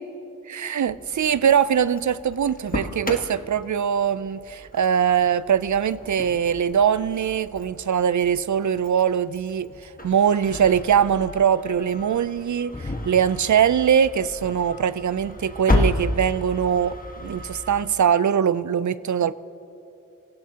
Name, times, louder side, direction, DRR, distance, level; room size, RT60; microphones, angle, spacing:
voice 1, 0.5-19.3, right 8 dB, 70° right, 0.5 m, -22 dB
Engine starting, 0.9-17.8, left 1 dB, 30° left, 1.4 m, -33 dB
27.0 x 16.5 x 2.8 m
wide cardioid pair, 85°, 31 cm